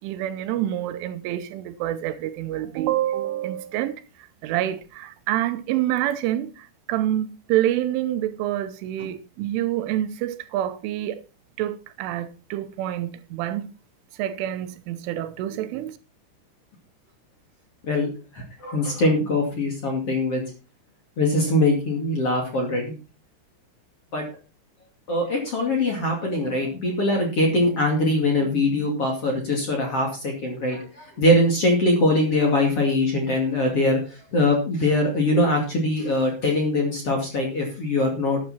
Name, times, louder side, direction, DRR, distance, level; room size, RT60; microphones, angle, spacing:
voice 1, 0.0-11.2 11.6-13.7 14.1-16.0, right 13 dB, 85° right, 3.2 m, -27 dB
voice 2, 17.8-20.4 21.2-23.0 24.1-24.2 25.1-38.4, left 1 dB, 40° left, 2.5 m, -22 dB
12.0 x 9.4 x 4.3 m
omnidirectional pair, 5.8 m